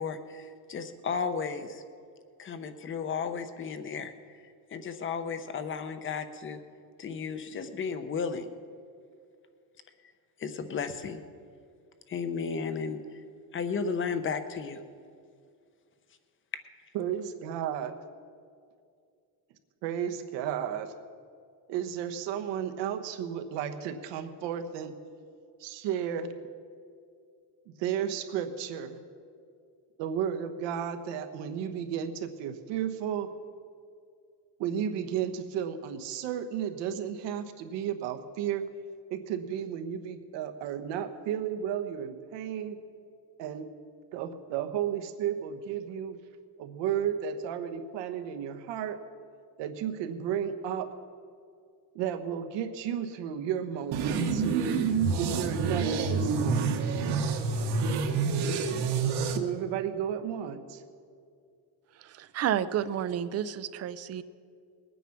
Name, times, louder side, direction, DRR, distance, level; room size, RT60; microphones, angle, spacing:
voice 1, 0.0-1.8 2.4-4.1 4.7-6.6 7.0-8.5 10.4-11.2 12.1-13.0 13.5-14.8, left 5 dB, 30° left, 10 dB, 0.8 m, -34 dB
voice 2, 16.9-17.9 19.8-20.9 21.7-24.9 25.6-26.3 27.8-29.0 30.0-33.3 34.6-38.7 39.1-42.8 43.4-43.7 44.1-46.2 46.6-49.0 49.6-50.9 51.9-54.5 55.1-56.8 59.3-60.8, right 9 dB, 85° right, 7 dB, 1.2 m, -33 dB
sound 1, 53.9-59.4, right 5 dB, 70° right, 1.4 m, -27 dB
voice 3, 62.0-64.2, right 10 dB, 40° right, 15 dB, 0.5 m, -31 dB
20.5 x 9.2 x 5.9 m, 2.3 s
cardioid pair, 155°, 42 cm